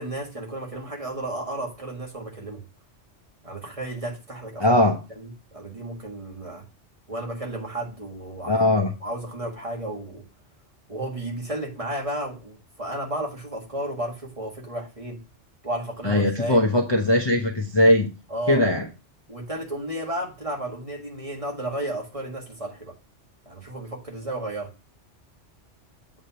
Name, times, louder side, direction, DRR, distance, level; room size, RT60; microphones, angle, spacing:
voice 1, 0.0-2.6 3.4-4.7 5.2-6.6 7.1-8.7 9.0-10.2 10.9-15.2 15.6-16.6 18.3-18.6 19.3-22.9 23.4-24.7, right 1 dB, 30° right, 1.7 m, -33 dB
voice 2, 4.6-5.0 8.5-8.9 16.0-18.1 18.5-18.9, left 1 dB, 25° left, 0.8 m, -20 dB
7.9 x 3.4 x 5.6 m
omnidirectional pair, 1.2 m